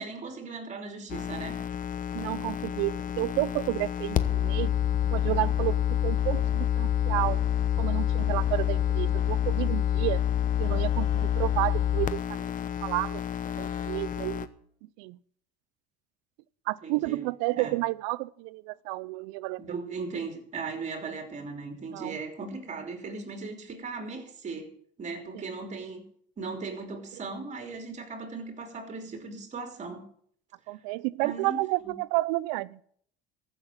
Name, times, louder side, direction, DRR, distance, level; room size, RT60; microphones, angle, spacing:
voice 1, 0.0-1.6 16.8-17.2 17.6-17.7 19.6-24.7 25.0-26.0 26.4-30.0 31.2-31.6 31.8-32.0, right 4 dB, 35° right, 3.0 m, -38 dB
sound 1, 1.1-14.5, left 11 dB, 40° left, 0.9 m, -28 dB
voice 2, 2.1-4.7 5.1-7.4 7.8-10.2 10.6-12.5 12.8-13.2 13.6-14.5 15.0-15.2 16.7-19.6 21.9-22.2 30.7-32.8, right 21 dB, 80° right, 0.5 m, -31 dB
14.5 x 6.6 x 7.6 m
supercardioid pair, 105°, 21 cm